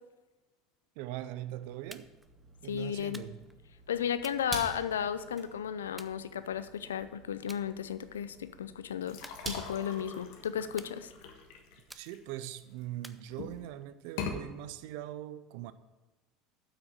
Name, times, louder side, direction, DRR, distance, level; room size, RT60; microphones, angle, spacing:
voice 1, 1.0-2.1 2.6-3.4 11.9-15.7, right 13 dB, 70° right, 0.5 m, -41 dB
sound 1, 1.5-12.0, right 2 dB, 30° right, 2.4 m, -48 dB
sound 2, 1.9-2.3 3.1-3.6 4.2-5.2 6.0-6.8 7.5-7.7 8.1-8.4 9.2-10.0 10.8-11.4 11.9-12.4 13.0-13.8, right 1 dB, 5° right, 0.6 m, -53 dB
voice 2, 2.7-3.2 3.9-9.2 9.5-11.1, left 9 dB, 90° left, 0.5 m, -34 dB
sound 3, 9.0-12.8 13.3-13.7 14.1-14.4, left 6 dB, 70° left, 1.3 m, -42 dB
8.2 x 6.1 x 7.5 m
hypercardioid pair, 75°, 0 cm